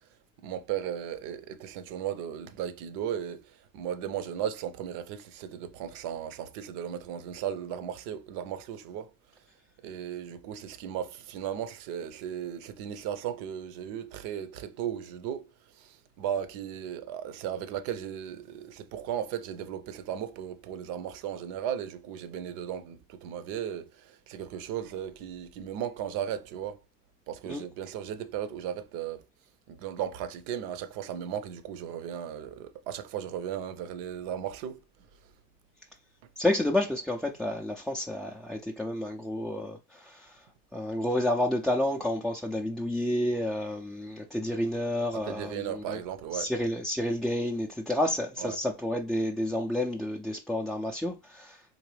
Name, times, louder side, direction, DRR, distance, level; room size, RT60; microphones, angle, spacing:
voice 1, 0.4-3.4 3.7-9.1 9.8-15.5 15.8-26.8 27.3-29.2 29.7-34.8 45.1-46.5 48.4-48.6, right 9 dB, 70° right, 0.7 m, -36 dB
voice 2, 36.4-40.4 40.7-46.0 46.3-51.6, left 1 dB, ahead, 0.3 m, -30 dB
3.9 x 2.6 x 3.1 m
supercardioid pair, 90°, 38 cm